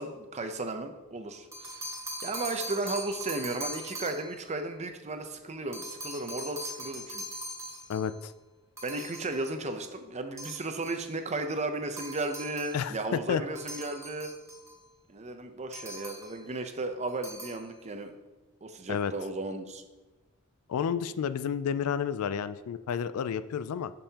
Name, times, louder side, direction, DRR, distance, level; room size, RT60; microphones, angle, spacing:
voice 1, 0.0-1.9 2.2-7.2 8.8-14.3 15.1-18.1 18.6-19.8, right 2 dB, 30° right, 7 dB, 0.6 m, -35 dB
sound 1, 1.3-4.4 5.7-8.2 8.8-9.5 10.4-11.1 12.0-12.8 13.6-14.8 15.7-16.4 17.1-17.7, right 1 dB, 15° right, 1.1 m, -41 dB
voice 2, 7.9-8.3 12.7-13.4 18.9-19.1 20.7-23.9, left 7 dB, 70° left, 14 dB, 0.3 m, -31 dB
9.9 x 5.4 x 2.8 m, 1.2 s
head